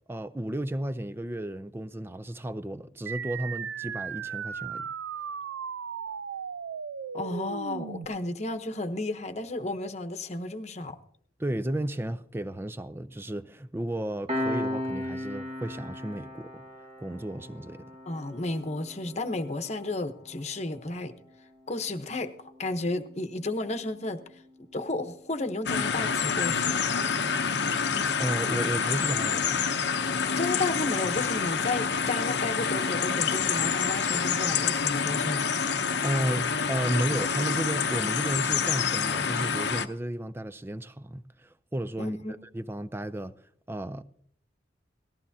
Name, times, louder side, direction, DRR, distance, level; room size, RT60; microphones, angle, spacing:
voice 1, 0.1-4.9 11.4-16.7 17.0-17.8 28.2-29.6 36.0-43.3 43.7-44.0, right 1 dB, 10° right, 0.4 m, -33 dB
sound 1, 3.1-8.1, right 7 dB, 90° right, 0.4 m, -36 dB
voice 2, 7.1-11.0 18.1-21.1 21.7-22.3 22.6-24.2 24.7-26.8 30.3-35.5 42.0-42.3, left 2 dB, 35° left, 0.9 m, -32 dB
Piano, 14.3-25.4, left 1 dB, 35° right, 1.3 m, -39 dB
sound 2, 25.7-39.9, left 6 dB, 65° left, 0.7 m, -27 dB
18.0 x 14.5 x 2.7 m
head